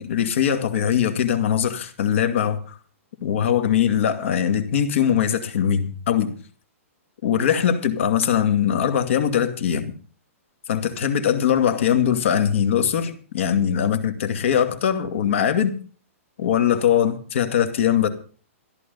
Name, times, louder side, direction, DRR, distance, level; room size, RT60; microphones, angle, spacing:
voice 1, 0.0-2.8 3.2-6.3 7.2-9.9 10.7-15.7 16.4-18.1, left 9 dB, 60° left, 2.3 m, -21 dB
14.5 x 11.5 x 5.4 m
hypercardioid pair, 165°, 8 cm